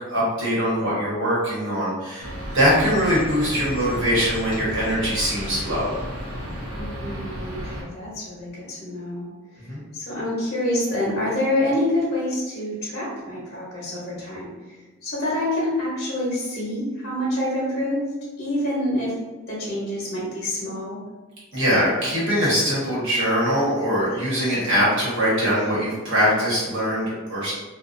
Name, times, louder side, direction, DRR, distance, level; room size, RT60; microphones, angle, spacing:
voice 1, 0.1-2.3 2.5-5.9 9.7-9.8 21.5-27.5, equal, 60° right, -7 dB, 1.1 m, -22 dB
sound 1, 2.2-7.8, equal, 80° right, 0.8 m, -33 dB
voice 2, 6.7-9.3 9.9-14.5 15.0-18.0 18.4-19.2 19.5-21.0, left 1 dB, 50° left, -6 dB, 0.8 m, -26 dB
2.4 x 2.3 x 2.5 m, 1.2 s
head